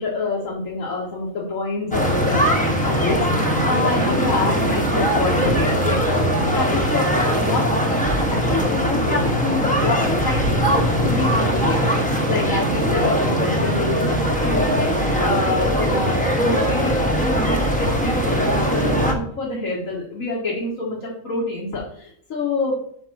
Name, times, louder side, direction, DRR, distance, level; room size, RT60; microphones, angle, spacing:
voice 1, 0.0-6.3 6.5-7.6 8.4-10.4 10.7-22.8, left 3 dB, 85° left, -3 dB, 1.8 m, -26 dB
sound 1, 1.9-19.1, equal, 5° left, 1.0 m, -20 dB
5.6 x 5.2 x 6.0 m, 0.64 s
omnidirectional pair, 1.4 m